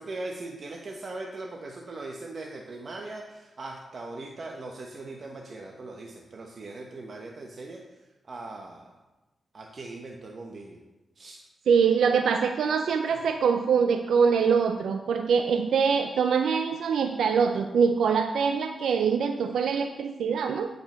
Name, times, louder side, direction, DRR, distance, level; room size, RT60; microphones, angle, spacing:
voice 1, 0.0-7.8 8.3-9.0 9.5-10.8 11.2-11.4 13.1-13.2, right 2 dB, 55° right, 1 dB, 1.1 m, -40 dB
voice 2, 11.7-20.7, right 6 dB, 85° right, 7 dB, 0.5 m, -24 dB
9.0 x 5.4 x 6.7 m, 1.1 s
cardioid pair, 75°, 0 cm